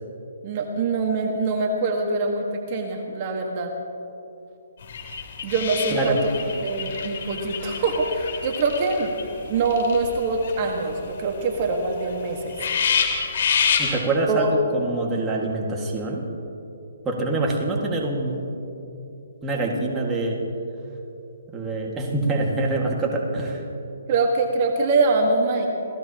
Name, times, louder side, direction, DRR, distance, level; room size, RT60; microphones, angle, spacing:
voice 1, 0.4-3.7 5.4-6.2 6.6-9.1 9.4-12.5 14.3-14.5 24.1-25.7, right 3 dB, 35° right, 1 dB, 1.6 m, -24 dB
sound 1, 4.8-9.3 9.6-10.9 11.2-11.3 11.6-11.7 12.1-12.2 12.4-13.9, left 7 dB, 55° left, 3.0 m, -27 dB
voice 2, 13.8-16.2 17.1-18.5 19.4-20.4 21.5-23.6, right 2 dB, 10° right, -2 dB, 1.9 m, -25 dB
28.0 x 17.0 x 2.9 m, 2.8 s
hypercardioid pair, 155°, 0 cm